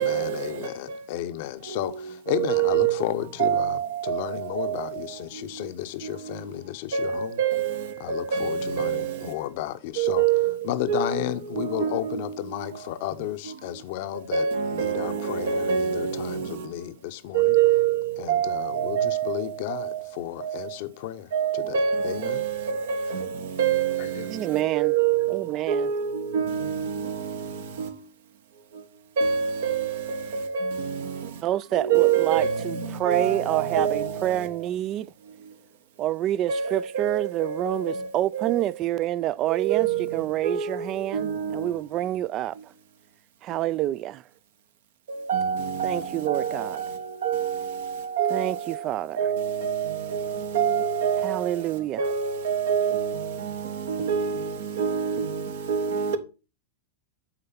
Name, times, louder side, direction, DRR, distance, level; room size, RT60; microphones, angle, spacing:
voice 1, 0.0-7.4 8.0-10.3 10.6-14.5 14.7-17.6 18.2-22.4 24.0-24.3, left 13 dB, 60° left, 0.8 m, -33 dB
voice 2, 2.5-2.9 3.4-4.2 4.6-4.7 6.9-7.7 8.1-9.0 10.0-10.5 10.9-11.1 11.6-12.2 14.3-16.1 17.3-18.0 18.3-19.4 21.3-22.4 22.9-23.2 23.6-24.0 24.8-25.3 25.7-26.0 26.3-26.9 29.2-29.8 30.5-30.8 31.9-32.6 33.1-34.1 36.5-36.7 37.0-37.2 39.7-40.0 40.4-40.5 41.1-41.7 45.3-46.0 46.3-46.5 47.2-47.6 48.2-48.4 49.2-49.9 50.5-51.4 52.0-53.1 53.9-54.4 54.8-55.2 55.7-56.2, right 8 dB, 75° right, 1.2 m, -24 dB
voice 3, 24.3-25.0 25.3-25.9 31.4-35.1 36.0-42.7 43.4-44.2 45.8-46.8 48.3-49.2 51.2-52.0, right 13 dB, 40° right, 0.3 m, -28 dB
8.9 x 3.9 x 5.7 m
hypercardioid pair, 115°, 0 cm